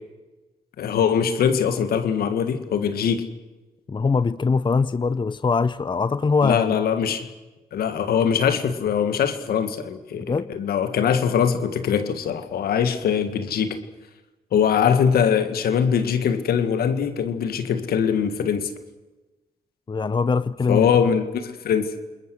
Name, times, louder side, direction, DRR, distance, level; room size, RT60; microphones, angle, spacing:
voice 1, 0.8-3.3 6.4-7.3 7.7-13.8 14.5-18.7 20.7-22.0, left 7 dB, 70° left, 1.9 m, -22 dB
voice 2, 3.9-6.8 10.3-10.5 19.9-20.9, left 4 dB, 30° left, 0.7 m, -22 dB
28.5 x 21.0 x 6.4 m
hypercardioid pair, 40°, 16 cm